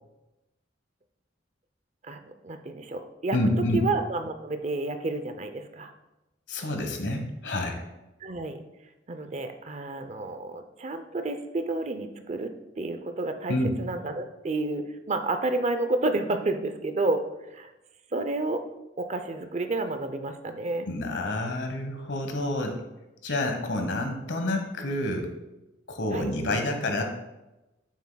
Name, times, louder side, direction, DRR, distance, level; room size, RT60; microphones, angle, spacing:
voice 1, 2.0-3.4 3.7-5.9 8.2-8.6 9.1-17.2 17.5-17.7 18.1-18.6 19.0-20.9 26.1-26.3, right 2 dB, 40° right, 8 dB, 0.5 m, -30 dB
voice 2, 3.3-3.8 6.5-7.8 13.5-13.8 20.9-22.8 23.2-25.3 25.9-27.0, left 1 dB, 75° left, 5 dB, 1.2 m, -28 dB
9.5 x 7.3 x 2.3 m, 0.99 s
head